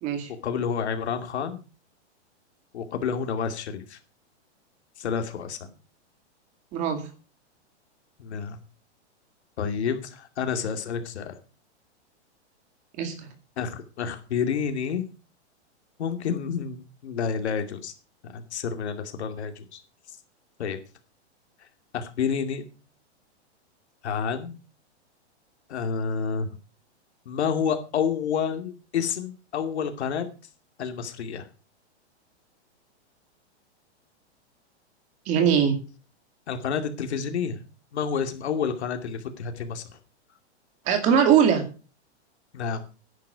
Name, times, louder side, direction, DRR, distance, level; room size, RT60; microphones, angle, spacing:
voice 1, 0.4-1.6 2.7-4.0 5.0-5.6 8.2-8.6 9.6-11.4 13.6-15.0 16.0-17.9 18.3-19.8 20.6-20.8 21.9-22.6 24.0-24.5 25.7-26.5 27.3-30.3 30.8-31.5 36.5-37.6 37.9-39.8 42.5-42.8, left 6 dB, 70° left, 6 dB, 2.6 m, -29 dB
voice 2, 6.7-7.0 13.0-13.1 35.3-35.8 40.9-41.6, right 8 dB, 20° right, 7 dB, 2.2 m, -21 dB
11.5 x 10.0 x 5.2 m, 0.34 s
supercardioid pair, 175°, 34 cm